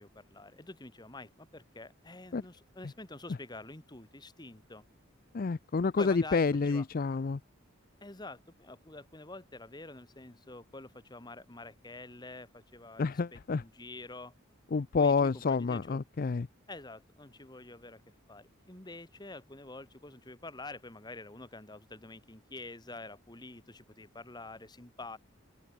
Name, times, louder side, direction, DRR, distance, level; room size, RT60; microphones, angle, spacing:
voice 1, 0.0-4.8 6.0-6.8 8.0-14.3 15.0-16.0 16.7-18.0 18.3-25.2, left 2 dB, 20° left, 1.7 m, -47 dB
voice 2, 5.3-7.4 13.0-13.6 14.7-16.5, left 4 dB, 45° left, 0.4 m, -28 dB
open air
head